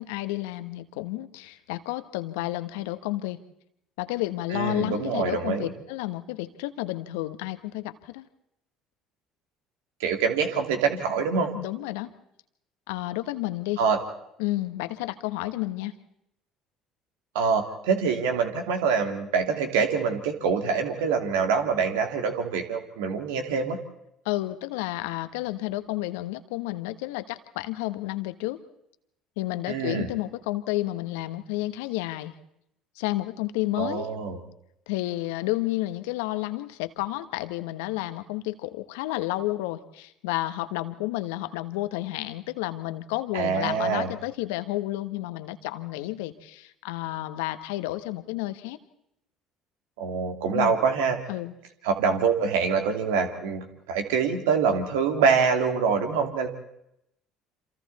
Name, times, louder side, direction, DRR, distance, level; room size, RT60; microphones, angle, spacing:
voice 1, 0.0-3.4 4.0-8.3 11.5-12.1 12.9-13.8 14.4-15.9 24.2-28.6 29.4-32.3 33.0-34.1 34.9-48.8 50.5-50.7 51.3-51.5, left 17 dB, 75° left, 11 dB, 1.3 m, -31 dB
voice 2, 4.5-5.7 10.0-11.5 13.8-14.0 17.3-23.8 29.7-30.1 33.8-34.4 43.3-44.1 50.0-51.2 51.8-56.5, right 5 dB, 75° right, 5 dB, 2.9 m, -25 dB
28.0 x 27.0 x 4.3 m, 0.79 s
hypercardioid pair, 60°, 0 cm